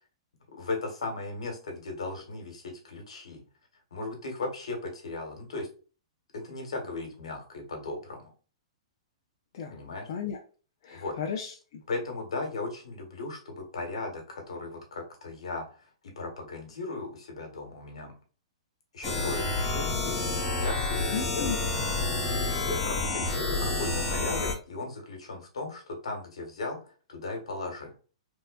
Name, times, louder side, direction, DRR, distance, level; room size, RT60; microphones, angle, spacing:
voice 1, 0.5-3.4 3.9-5.7 6.3-8.3 9.7-10.1 10.9-11.2 11.9-15.8 16.1-18.1 18.9-21.5 22.2-27.9, left 3 dB, 80° left, 2 dB, 1.6 m, -37 dB
voice 2, 10.1-10.4 10.8-11.8 21.1-21.8, left 6 dB, 55° left, 0 dB, 0.7 m, -35 dB
sound 1, 19.0-24.5, left 3 dB, 20° left, 1.3 m, -29 dB
3.5 x 3.1 x 2.4 m, 0.36 s
hypercardioid pair, 120°, 3 cm